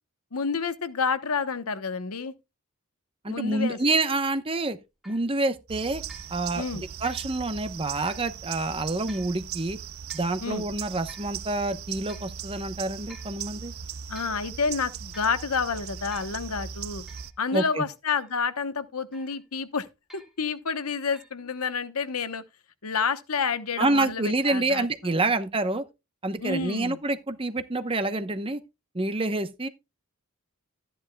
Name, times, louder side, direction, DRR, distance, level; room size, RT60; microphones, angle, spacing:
voice 1, 0.3-2.3 3.3-3.8 6.5-6.8 10.4-10.6 14.1-17.0 17.4-19.9 20.1-22.4 22.8-24.9 26.4-27.0, left 5 dB, 90° left, 1.0 m, -29 dB
voice 2, 3.2-4.8 5.1-6.0 6.3-6.6 7.0-9.8 10.1-13.7 17.5-17.9 23.8-25.8 26.2-28.6 28.9-29.7, right 2 dB, 25° right, 0.9 m, -27 dB
sound 1, 5.0-5.3 6.1-6.3 7.0-7.3 8.1-8.3 9.1-9.3 10.1-10.4 11.1-11.4 12.1-12.3 13.1-13.4 13.9-14.4 15.1-15.4 16.1-16.4 17.1-17.3 18.1-18.4 19.1-19.5 20.1-20.4 21.1-21.3, right 2 dB, ahead, 2.2 m, -50 dB
sound 2, 5.7-17.3, right 8 dB, 70° right, 0.6 m, -39 dB
13.5 x 10.0 x 2.3 m
head